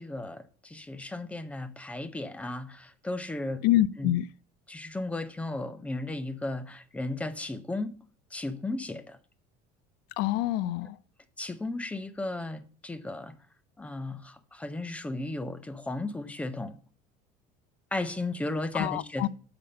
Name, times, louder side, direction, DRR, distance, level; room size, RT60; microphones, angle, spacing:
voice 1, 0.0-3.6 4.0-4.1 4.7-7.9 8.3-9.2 11.4-13.3 13.8-16.8 17.9-19.3, left 2 dB, 5° left, 0.7 m, -35 dB
voice 2, 3.6-4.2 10.2-11.0 18.7-19.3, left 14 dB, 70° left, 0.5 m, -26 dB
6.8 x 5.6 x 5.4 m
cardioid pair, 145°, 18 cm